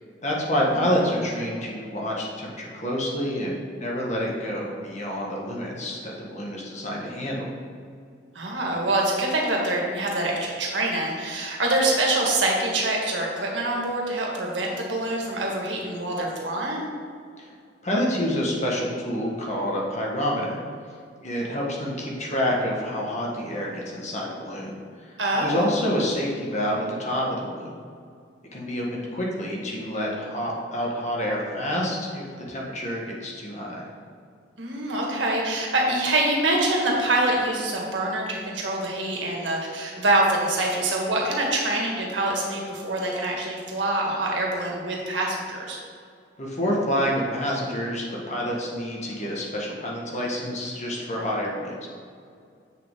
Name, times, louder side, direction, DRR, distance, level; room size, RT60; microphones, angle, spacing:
voice 1, 0.2-7.5 17.4-17.5 17.8-20.6 21.2-24.7 25.1-27.7 28.5-33.8 46.4-51.9, equal, 40° left, -3 dB, 1.6 m, -28 dB
voice 2, 8.4-16.9 25.2-25.7 34.6-45.8, right 2 dB, 90° right, -1 dB, 1.8 m, -25 dB
7.9 x 6.6 x 3.8 m, 2.3 s
head